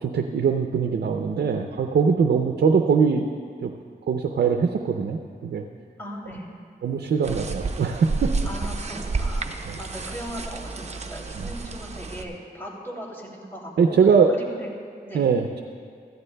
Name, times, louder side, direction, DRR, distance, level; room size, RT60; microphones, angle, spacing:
voice 1, 0.0-3.3 3.6-3.7 4.1-5.6 6.8-8.3 9.7-9.8 11.4-11.5 13.8-14.3 15.1-15.6, right 6 dB, 85° right, 5 dB, 0.5 m, -22 dB
voice 2, 6.0-6.5 8.4-9.5 9.8-14.7 15.0-15.3, equal, 15° left, -3 dB, 2.8 m, -38 dB
sound 1, 7.2-12.2, right 3 dB, 40° right, 0.7 m, -30 dB
16.0 x 14.0 x 2.2 m, 2.2 s
cardioid pair, 70°, 17 cm